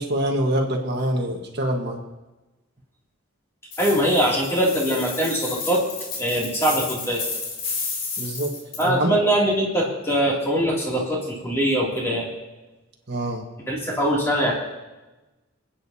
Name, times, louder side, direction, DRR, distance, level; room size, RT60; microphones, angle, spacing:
voice 1, 0.0-2.0 8.2-8.6 8.8-9.2 13.1-13.4, right 1 dB, 55° right, 1 dB, 1.4 m, -25 dB
sound 1, 3.7-8.9, left 4 dB, 45° left, 3.0 m, -32 dB
voice 2, 3.8-5.8 6.2-7.2 8.8-12.3 13.7-14.5, equal, 15° left, -4 dB, 2.7 m, -22 dB
26.5 x 9.0 x 2.8 m, 1.1 s
head